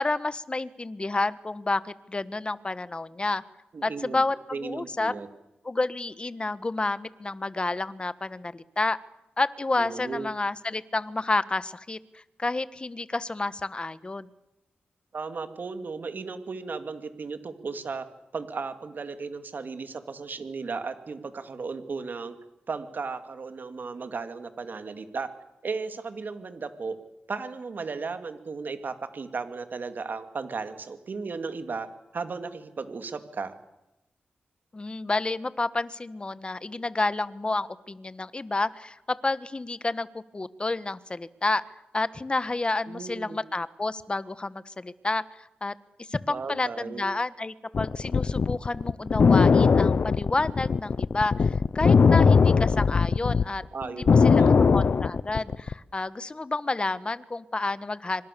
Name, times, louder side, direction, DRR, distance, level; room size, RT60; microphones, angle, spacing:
voice 1, 0.0-3.4 3.8-5.1 5.6-9.0 9.4-14.3 34.7-41.6 41.9-58.3, left 2 dB, 25° left, 15 dB, 1.4 m, -30 dB
voice 2, 3.7-4.2 4.5-5.3 9.8-10.3 15.1-18.0 18.3-22.3 22.7-25.3 25.6-27.0 27.3-31.9 32.1-33.5 42.9-43.4 46.3-47.0 53.7-54.6, right 4 dB, 55° right, 8 dB, 2.7 m, -35 dB
sound 1, 47.7-53.4 53.8-55.7, left 5 dB, 55° left, 0.8 m, -20 dB
27.0 x 26.0 x 7.0 m, 0.93 s
wide cardioid pair, 90°, 4 cm